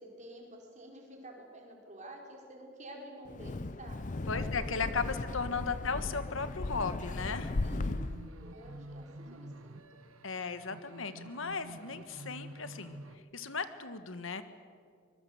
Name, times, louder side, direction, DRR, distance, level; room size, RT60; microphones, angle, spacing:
voice 1, 0.0-5.8 7.6-8.0 8.4-10.0, right 1 dB, 35° right, 0 dB, 4.9 m, -50 dB
Wind, 3.2-8.3, left 2 dB, 35° left, 0.6 m, -36 dB
voice 2, 4.3-7.5 10.2-13.0 13.3-14.4, left 5 dB, 70° left, 10 dB, 1.5 m, -36 dB
sound 1, 6.6-13.2, right 1 dB, 90° right, 1.4 m, -49 dB
24.5 x 22.5 x 8.1 m, 2.1 s
head